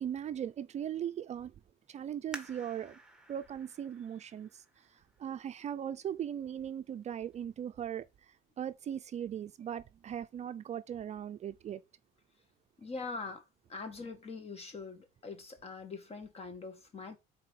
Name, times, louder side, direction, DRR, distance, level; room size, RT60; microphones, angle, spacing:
voice 1, 0.0-1.5 1.9-3.0 3.3-4.6 5.2-8.1 8.6-11.8, right 9 dB, 40° right, 0.5 m, -38 dB
sound 1, 2.3-5.7 6.3-6.4 7.0-7.4 7.8-7.9, right 2 dB, 5° right, 1.5 m, -51 dB
voice 2, 12.8-13.4 13.7-17.2, left 4 dB, 35° left, 1.9 m, -43 dB
5.8 x 4.1 x 4.8 m
supercardioid pair, 90°, 17 cm